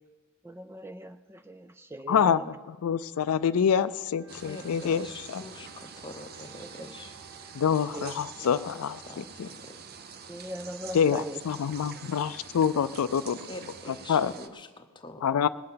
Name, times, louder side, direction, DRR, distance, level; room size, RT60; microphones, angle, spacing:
voice 1, 0.4-2.5 4.7-4.9 6.8-6.9 7.9-8.1 10.3-11.4, right 1 dB, 10° right, 10 dB, 0.3 m, -40 dB
voice 2, 2.1-5.4 7.5-9.5 10.9-13.4 13.9-14.3 15.2-15.5, left 7 dB, 75° left, 15 dB, 0.4 m, -26 dB
Wind instrument woodwind instrument, 4.1-9.3, right 2 dB, 80° right, 4.6 m, -57 dB
sound 1, 4.3-14.5, right 6 dB, 45° right, 0.7 m, -46 dB
voice 3, 4.4-7.1 8.4-9.8 13.5-15.2, left 2 dB, 20° left, 6 dB, 0.8 m, -45 dB
19.5 x 7.7 x 5.7 m, 1.4 s
head